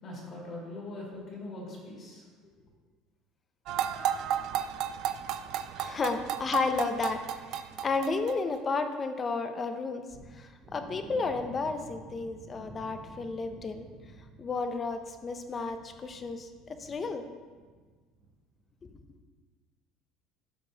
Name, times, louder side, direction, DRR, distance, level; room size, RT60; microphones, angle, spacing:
voice 1, 0.0-2.2, left 2 dB, 35° left, -4 dB, 2.2 m, -41 dB
sound 1, 3.7-8.5, right 10 dB, 50° right, 0.3 m, -33 dB
voice 2, 5.8-7.2 7.5-10.0 10.3-13.9 14.4-16.5 16.8-17.3 18.8-18.9, left 4 dB, 20° left, 8 dB, 0.5 m, -32 dB
sound 2, 10.1-17.9 18.1-18.3 18.7-18.8, right 2 dB, 35° right, 1.8 m, -51 dB
12.0 x 5.0 x 2.8 m, 1.4 s
cardioid pair, 165°, 0 cm